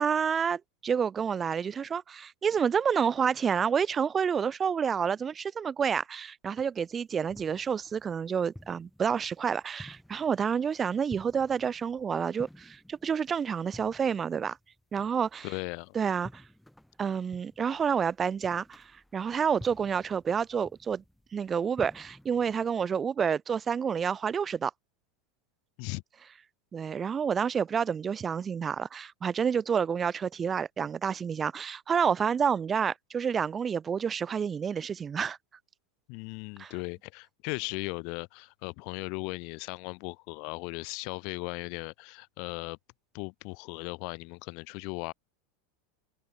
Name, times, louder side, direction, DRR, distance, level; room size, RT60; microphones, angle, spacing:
voice 1, 0.0-14.6 14.9-15.5 15.9-16.4 17.0-21.0 21.3-24.7 26.7-35.4 36.6-36.7, right 7 dB, 20° right, 0.4 m, -29 dB
sound 1, 6.8-22.7, left 1 dB, ahead, 7.4 m, -52 dB
voice 2, 15.4-15.9 25.8-26.0 36.1-42.8 43.1-45.1, left 33 dB, 55° left, 1.4 m, -37 dB
supercardioid pair, 135°, 0 cm